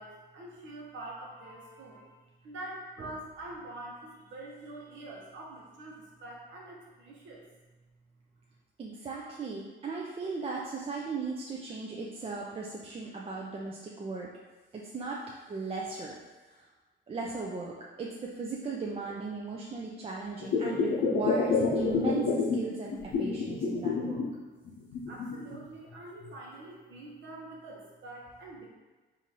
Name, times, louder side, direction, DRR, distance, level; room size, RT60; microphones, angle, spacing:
voice 1, 0.0-7.4 25.1-28.7, right 2 dB, 70° right, -2 dB, 0.9 m, -45 dB
voice 2, 8.8-14.3 14.9-15.2 15.5-16.2 17.1-17.7 18.0-24.2, right 4 dB, 30° right, -3 dB, 0.4 m, -37 dB
sound 1, 20.4-22.6 22.9-24.3 24.7-25.6 26.2-26.3, left 4 dB, 65° left, 0.6 m, -28 dB
3.8 x 2.6 x 2.8 m, 1.3 s
cardioid pair, 90°, 20 cm